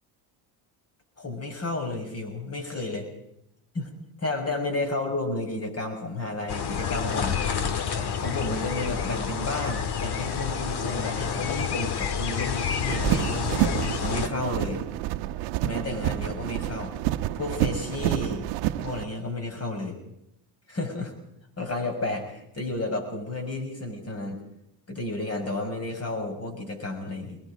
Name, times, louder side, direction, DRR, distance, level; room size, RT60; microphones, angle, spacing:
voice 1, 1.2-3.1 3.7-3.9 4.2-7.4 8.2-13.7 14.0-14.8 15.6-16.9 17.3-18.4 18.8-20.0 20.7-21.1 21.6-24.4 24.9-27.4, left 2 dB, 30° left, 4 dB, 6.6 m, -32 dB
sound 1, 6.5-14.3, left 7 dB, 55° left, 2.1 m, -29 dB
sound 2, 12.9-19.0, right 13 dB, 85° right, 1.1 m, -28 dB
24.0 x 21.5 x 5.2 m, 0.81 s
supercardioid pair, 95°, 48 cm